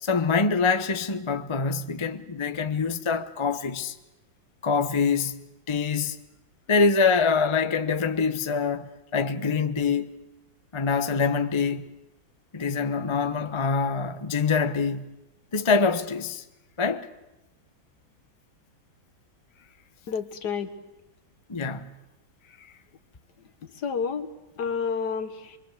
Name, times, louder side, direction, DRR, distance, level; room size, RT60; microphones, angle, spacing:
voice 1, 0.0-3.9 4.6-6.2 6.7-10.1 10.7-11.9 12.5-15.1 15.5-16.4 16.8-17.1 21.5-22.0, left 5 dB, 30° left, 0.5 m, -25 dB
voice 2, 20.1-20.7 23.8-24.3 24.6-25.6, left 6 dB, 55° left, 2.1 m, -29 dB
25.0 x 22.5 x 8.3 m
omnidirectional pair, 2.2 m